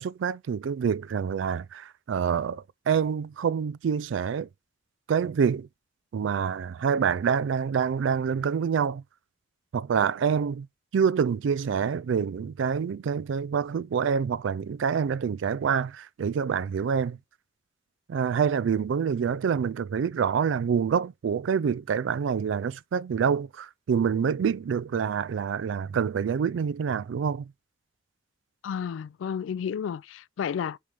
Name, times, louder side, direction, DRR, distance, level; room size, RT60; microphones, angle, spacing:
voice 1, 0.0-4.5 5.1-5.7 6.1-9.0 9.7-10.7 10.9-17.2 18.1-27.4, right 7 dB, 80° right, 0.3 m, -26 dB
voice 2, 28.6-30.8, left 7 dB, 85° left, 0.3 m, -32 dB
7.4 x 3.2 x 5.3 m
head